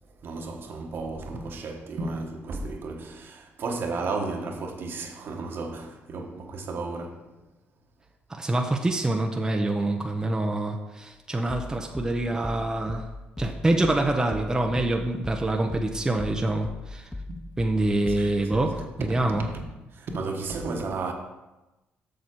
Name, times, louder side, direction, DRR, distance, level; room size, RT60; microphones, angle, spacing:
voice 1, 0.2-7.3 17.3-17.4 18.1-18.4 19.4-19.6 19.9-21.1, right 3 dB, 55° right, 1.3 m, -33 dB
voice 2, 8.4-13.1 13.4-17.1 17.6-19.5, right 2 dB, 15° right, 0.8 m, -26 dB
sound 1, 11.5-19.0, left 2 dB, 10° left, 0.4 m, -39 dB
6.9 x 6.3 x 4.6 m
cardioid pair, 85°, 4 cm